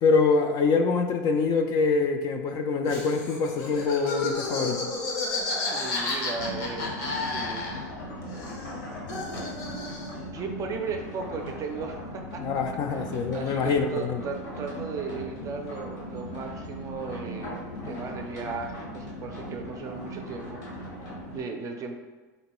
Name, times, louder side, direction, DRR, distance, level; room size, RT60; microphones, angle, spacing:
voice 1, 0.0-4.9 12.4-14.2, left 4 dB, 45° left, 6 dB, 0.4 m, -25 dB
Laughter, 2.9-8.0 8.3-10.2, left 3 dB, 60° left, 0.8 m, -32 dB
voice 2, 5.7-7.8 10.3-12.4 12.9-17.5 17.8-20.9 21.3-21.9, right 4 dB, 35° right, 4 dB, 0.5 m, -36 dB
Water mill - gears, 6.3-21.4, equal, 75° left, 1.2 m, -38 dB
3.9 x 2.2 x 2.9 m, 1.3 s
hypercardioid pair, 105°, 10 cm